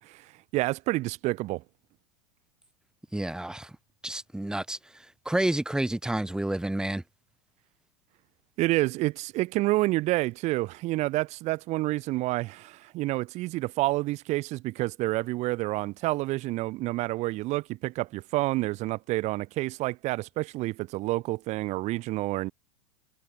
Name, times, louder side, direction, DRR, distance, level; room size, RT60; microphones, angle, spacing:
voice 1, 0.5-1.6 8.6-22.5, right 19 dB, 45° right, 2.3 m, -28 dB
voice 2, 3.1-3.7 4.0-4.8 5.3-7.0, right 1 dB, 5° right, 1.9 m, -29 dB
hypercardioid pair, 100°, 16 cm